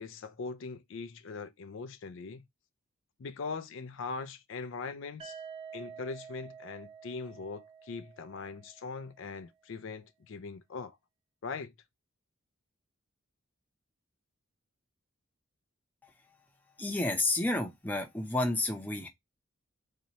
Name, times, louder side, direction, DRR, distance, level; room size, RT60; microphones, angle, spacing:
voice 1, 0.0-2.4 3.2-5.4 5.7-11.0 11.4-11.7, left 4 dB, 60° left, 0.4 m, -41 dB
sound 1, 5.2-9.1, right 6 dB, 25° right, 0.9 m, -49 dB
voice 2, 16.8-19.1, left 2 dB, 10° left, 0.7 m, -30 dB
4.1 x 2.8 x 2.9 m
head